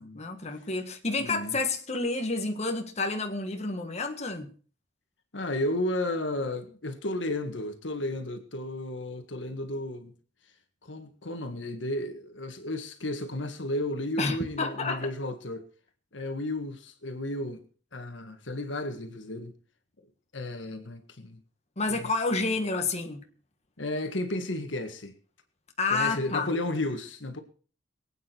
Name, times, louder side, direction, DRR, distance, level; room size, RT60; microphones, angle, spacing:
voice 1, 0.0-4.5 14.2-15.1 21.8-23.2 25.8-26.5, left 3 dB, 35° left, 1.6 m, -29 dB
voice 2, 1.2-1.6 5.3-10.1 10.8-15.7 16.1-17.6 17.9-19.5 20.3-21.4 21.9-22.1 23.8-25.1 25.9-27.4, left 1 dB, 75° left, 1.8 m, -33 dB
23.0 x 9.1 x 4.6 m
head